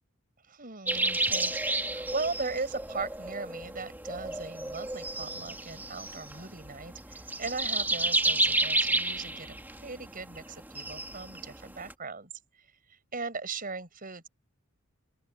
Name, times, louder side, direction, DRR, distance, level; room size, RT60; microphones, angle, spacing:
voice 1, 0.5-12.3 12.9-14.3, right 4 dB, 45° right, 6.1 m, -38 dB
sound 1, 0.9-11.9, right 2 dB, 10° right, 2.7 m, -31 dB
open air
head